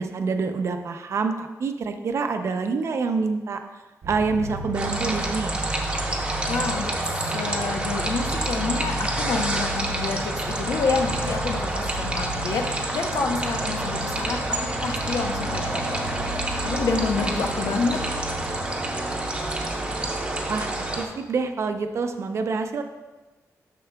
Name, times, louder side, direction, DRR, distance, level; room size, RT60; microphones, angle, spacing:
voice 1, 0.0-3.6 4.1-5.6 20.5-22.8, right 4 dB, 55° right, 7 dB, 0.5 m, -27 dB
sound 1, 4.0-21.0, right 2 dB, 80° right, 0.9 m, -33 dB
sound 2, 4.7-21.1, right 1 dB, 15° right, 0.8 m, -29 dB
voice 2, 6.2-14.4 14.8-16.3 16.6-18.0, left 4 dB, 70° left, 3 dB, 0.8 m, -28 dB
9.2 x 6.7 x 2.3 m, 1.1 s
wide cardioid pair, 150°, 6 cm